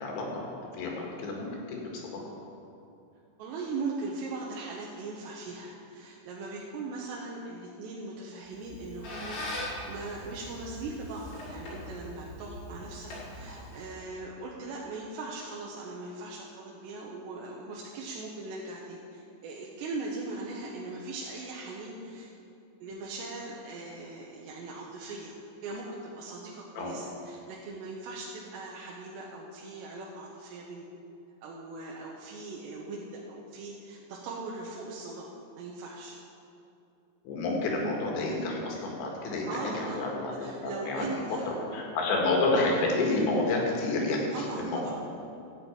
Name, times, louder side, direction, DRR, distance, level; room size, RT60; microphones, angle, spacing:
voice 1, 0.0-2.2 26.8-26.9 37.3-41.1 41.5-44.2 44.6-44.9, left 2 dB, 80° left, -1 dB, 3.8 m, -30 dB
voice 2, 3.4-9.5 9.9-22.3 22.8-25.3 25.6-30.8 31.4-35.3 35.6-36.2 39.5-40.0 40.4-41.5 44.3-44.9, right 3 dB, 80° right, -3 dB, 3.0 m, -39 dB
Squeak, 8.5-14.0, left 1 dB, 55° left, 4.3 m, -41 dB
12.0 x 5.7 x 8.6 m, 2.7 s
omnidirectional pair, 5.1 m